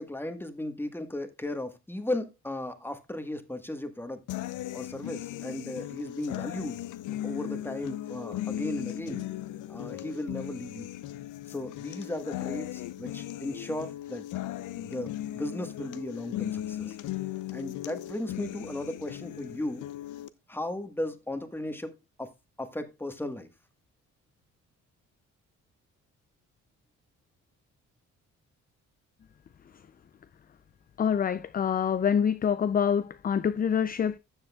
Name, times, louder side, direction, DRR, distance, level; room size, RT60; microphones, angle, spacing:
voice 1, 0.0-4.2 4.7-6.8 7.2-9.2 9.7-10.9 11.5-14.2 14.8-17.0 17.5-19.9 20.5-22.3 22.6-23.5, left 1 dB, 5° left, 1.4 m, -36 dB
sound 1, 4.3-20.3, left 13 dB, 85° left, 0.6 m, -37 dB
voice 2, 31.0-34.2, left 7 dB, 30° left, 0.4 m, -26 dB
13.5 x 7.5 x 2.3 m
cardioid pair, 90°, 30 cm